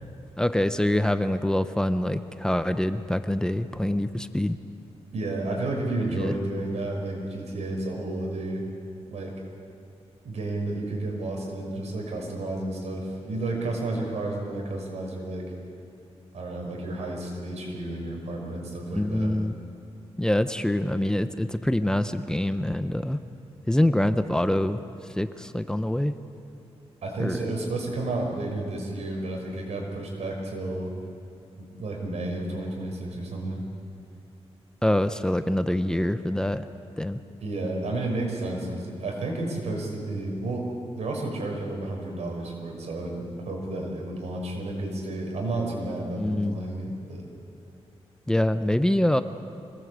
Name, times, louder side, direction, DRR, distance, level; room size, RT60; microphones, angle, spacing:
voice 1, 0.4-4.6 6.1-6.3 18.9-19.5 20.2-23.2 23.6-24.8 25.1-26.1 27.2-27.4 34.8-36.6 37.0-37.2 46.2-46.6 48.3-49.2, left 1 dB, 5° left, 10 dB, 0.8 m, -25 dB
voice 2, 5.1-8.6 9.1-9.4 10.2-15.5 16.3-19.3 27.0-30.9 31.6-33.6 37.4-47.3, right 2 dB, 90° right, 0 dB, 5.9 m, -31 dB
25.5 x 19.5 x 8.2 m, 2.6 s
wide cardioid pair, 115°, 11 cm